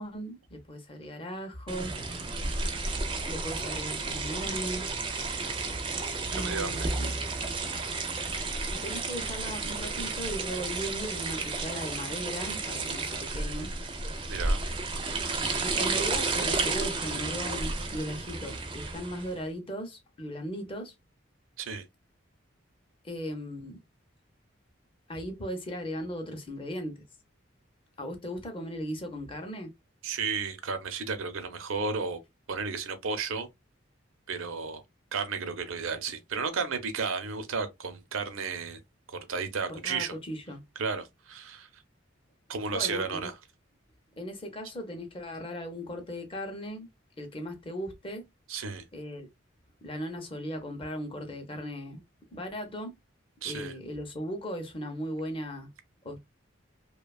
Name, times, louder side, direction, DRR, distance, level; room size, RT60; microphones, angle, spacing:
voice 1, 0.0-1.9 3.3-4.8 6.3-7.1 8.7-13.7 15.6-20.9 23.0-23.8 25.1-27.0 28.0-29.7 39.7-40.6 42.7-43.3 44.2-46.9 47.2-48.3 48.9-49.3 49.8-52.0 52.3-53.0 53.4-55.7 56.0-56.2, equal, 25° left, 0.5 m, -37 dB
sound 1, 1.7-19.4, right 3 dB, 25° right, 0.4 m, -32 dB
voice 2, 6.3-6.9 14.3-14.6 21.6-21.8 30.0-32.2 32.5-33.5 34.3-34.8 35.1-38.8 39.3-40.1 40.8-41.7 42.5-43.3 48.5-48.8 53.4-53.7, right 5 dB, 85° right, 0.6 m, -33 dB
2.7 x 2.2 x 2.3 m
head